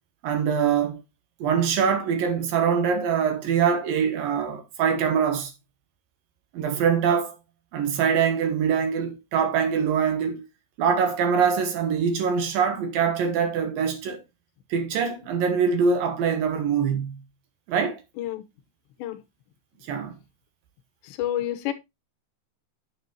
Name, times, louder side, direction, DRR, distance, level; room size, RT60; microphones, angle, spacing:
voice 1, 0.2-1.0 1.4-5.5 6.5-7.4 7.7-10.4 10.8-14.2 14.7-17.2 17.7-18.0 19.8-20.1, right 6 dB, 65° right, 2.6 m, -23 dB
voice 2, 21.0-21.7, left 12 dB, 90° left, 3.3 m, -29 dB
9.6 x 7.6 x 2.9 m
omnidirectional pair, 4.9 m